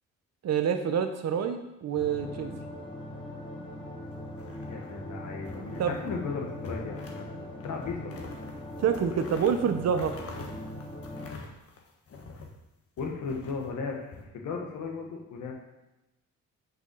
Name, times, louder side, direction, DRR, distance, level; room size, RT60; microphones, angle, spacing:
voice 1, 0.4-2.5 5.8-6.0 8.8-10.2, right 7 dB, 60° right, 8 dB, 0.9 m, -27 dB
sound 1, 2.0-11.3, left 1 dB, 15° left, 1.4 m, -41 dB
sound 2, 4.3-5.1 5.5-6.2 6.6-7.3 7.6-12.6 13.0-14.2, left 3 dB, 50° left, 1.4 m, -45 dB
voice 2, 4.7-8.3 13.0-15.5, left 4 dB, 75° left, 0 dB, 1.7 m, -36 dB
6.2 x 5.9 x 5.4 m, 0.97 s
cardioid pair, 90°, 30 cm